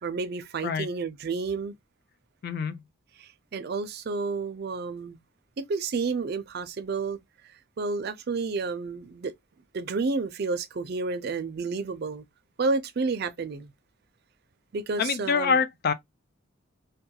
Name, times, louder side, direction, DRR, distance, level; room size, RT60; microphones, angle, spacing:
voice 1, 0.0-1.7 3.2-5.2 5.6-7.2 7.8-9.3 9.7-12.2 12.6-13.7 14.7-15.6, right 4 dB, 45° right, 0.4 m, -30 dB
voice 2, 2.4-2.8 15.0-15.9, left 5 dB, 45° left, 0.3 m, -25 dB
2.2 x 2.2 x 2.7 m
head